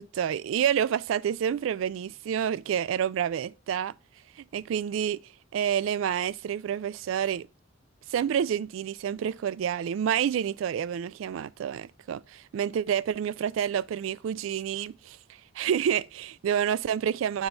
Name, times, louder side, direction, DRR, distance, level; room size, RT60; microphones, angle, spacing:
voice 1, 0.0-3.9 4.4-5.2 5.5-7.5 8.1-15.2 15.5-17.5, right 9 dB, 75° right, 0.3 m, -28 dB
7.1 x 4.4 x 3.9 m
head